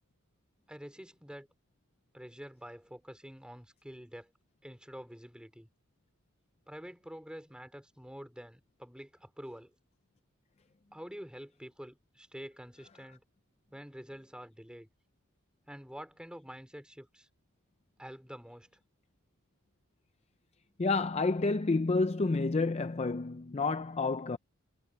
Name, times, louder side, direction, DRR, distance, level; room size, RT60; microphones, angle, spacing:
voice 1, 0.7-1.5 2.1-4.3 4.6-5.7 6.7-9.7 10.9-13.2 13.7-14.9 15.7-17.3 18.0-18.7, equal, 5° right, 4.6 m, -47 dB
voice 2, 20.8-24.4, left 3 dB, 30° left, 0.5 m, -29 dB
head